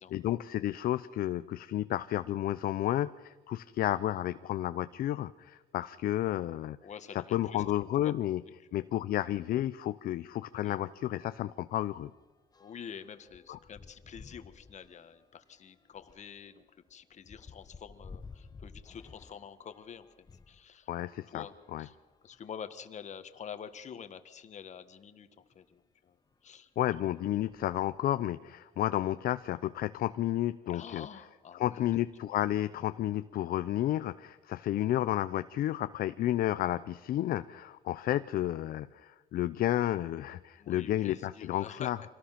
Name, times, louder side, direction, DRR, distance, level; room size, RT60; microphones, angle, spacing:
voice 1, 0.1-6.8 7.3-8.4 8.7-12.1 13.5-13.6 20.9-21.4 21.7-21.8 26.8-31.1 31.5-42.0, left 13 dB, 60° left, 12 dB, 0.6 m, -31 dB
voice 2, 6.8-7.6 8.6-9.1 10.6-10.8 12.6-20.9 21.3-21.5 21.8-22.0 22.2-26.2 26.4-27.0 30.7-31.9 40.6-41.9, left 7 dB, 45° left, 10 dB, 1.5 m, -47 dB
sound 1, 10.3-10.4 10.7-10.9 11.2-20.6 21.4-22.7 23.4-23.5 23.7-23.8 25.5-25.6 26.3-26.6 26.9-28.2, left 4 dB, 25° left, 0.9 m, -54 dB
25.5 x 18.0 x 5.9 m, 1.3 s
cardioid pair, 110°, 17 cm